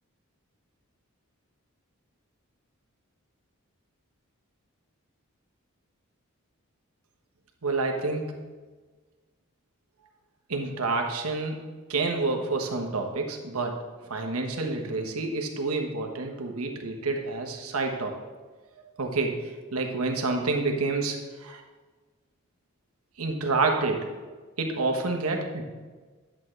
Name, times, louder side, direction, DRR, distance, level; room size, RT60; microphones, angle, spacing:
voice 1, 7.6-8.3 10.5-11.6 11.9-13.8 14.1-18.1 19.0-21.6 23.2-24.1 24.6-25.7, right 3 dB, 85° right, 3 dB, 1.2 m, -28 dB
11.0 x 7.4 x 3.3 m, 1.4 s
head